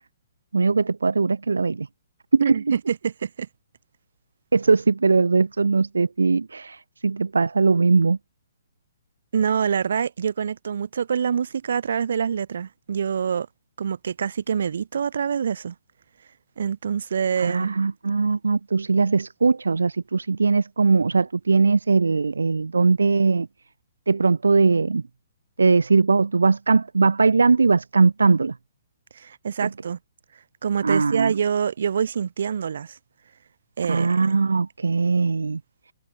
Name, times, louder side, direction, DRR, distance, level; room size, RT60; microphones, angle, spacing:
voice 1, 0.5-1.9 2.3-2.6 4.5-8.2 17.4-23.5 24.1-25.0 25.6-28.5 29.6-29.7 30.8-31.3 33.9-35.6, right 4 dB, 85° right, 0.4 m, -20 dB
voice 2, 2.4-3.5 9.3-13.5 13.8-15.8 16.6-17.7 29.1-30.0 30.6-33.0 33.8-34.4, right 7 dB, 65° right, 3.5 m, -25 dB
hypercardioid pair, 130°, 0 cm